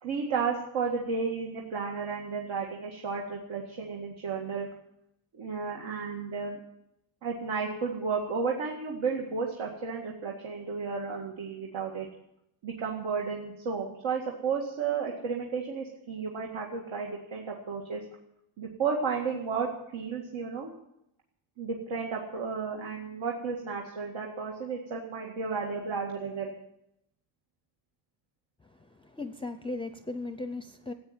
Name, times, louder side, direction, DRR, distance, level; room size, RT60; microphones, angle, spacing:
voice 1, 0.0-4.7 5.3-6.6 7.2-12.1 12.6-18.0 18.6-20.7 21.6-26.5, right 5 dB, 80° right, 0 dB, 2.2 m, -33 dB
voice 2, 28.6-30.9, left 2 dB, 10° left, 9 dB, 0.5 m, -37 dB
15.0 x 9.0 x 8.9 m, 0.80 s
wide cardioid pair, 170°, 46 cm